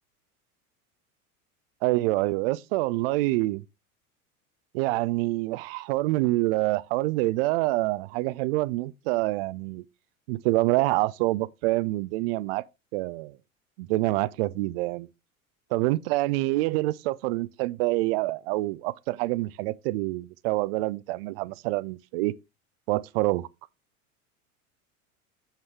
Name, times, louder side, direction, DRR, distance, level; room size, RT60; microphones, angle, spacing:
voice 1, 1.8-3.6 4.7-9.8 10.3-12.6 12.9-13.4 13.8-15.1 15.7-22.3 22.9-23.5, right 19 dB, 45° right, 0.5 m, -26 dB
8.0 x 8.0 x 3.3 m
figure-of-eight pair, 80°, 43 cm